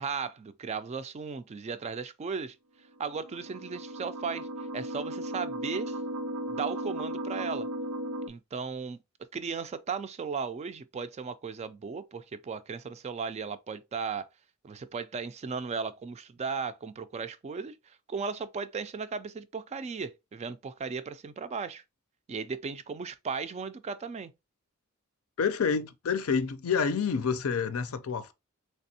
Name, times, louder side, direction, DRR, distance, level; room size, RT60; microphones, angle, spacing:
voice 1, 0.0-2.6 3.0-4.5 4.7-6.0 6.5-7.7 8.3-9.0 9.3-14.3 14.6-21.8 22.3-24.3, right 5 dB, 30° right, 0.3 m, -36 dB
sound 1, 3.0-8.3, right 1 dB, 85° right, 0.5 m, -36 dB
voice 2, 25.4-28.3, left 6 dB, 80° left, 0.5 m, -28 dB
3.3 x 3.3 x 2.7 m
head